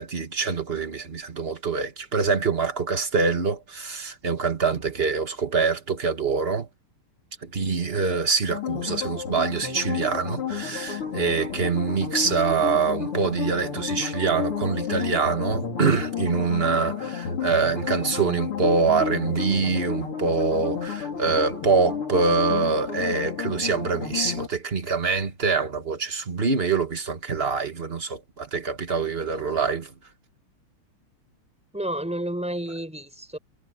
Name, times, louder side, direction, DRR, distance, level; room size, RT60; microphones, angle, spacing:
voice 1, 0.0-6.7 7.4-29.9, right 5 dB, 30° right, 1.7 m, -25 dB
sound 1, 8.5-24.5, left 7 dB, 85° left, 4.2 m, -31 dB
voice 2, 8.7-9.0 31.7-33.4, right 1 dB, 5° right, 5.6 m, -31 dB
omnidirectional pair, 2.4 m